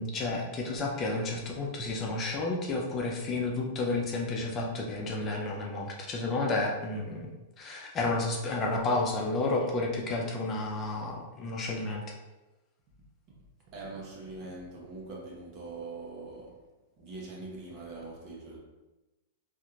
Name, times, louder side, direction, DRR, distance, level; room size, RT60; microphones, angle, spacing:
voice 1, 0.0-7.3 7.6-12.0, left 2 dB, 30° left, 0.6 m, -31 dB
voice 2, 13.7-16.6 17.0-18.6, right 3 dB, 45° right, 1.1 m, -42 dB
4.2 x 2.6 x 2.5 m
hypercardioid pair, 115°, 0 cm